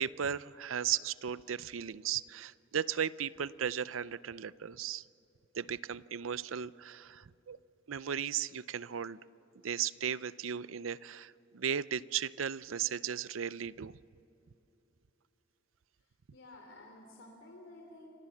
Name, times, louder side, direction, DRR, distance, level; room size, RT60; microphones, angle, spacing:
voice 1, 0.0-5.0 5.5-7.6 7.9-9.2 9.6-13.9, right 8 dB, 85° right, 18 dB, 0.6 m, -36 dB
voice 2, 16.0-18.1, left 2 dB, 75° left, 1 dB, 3.2 m, -53 dB
30.0 x 25.5 x 7.2 m, 2.9 s
head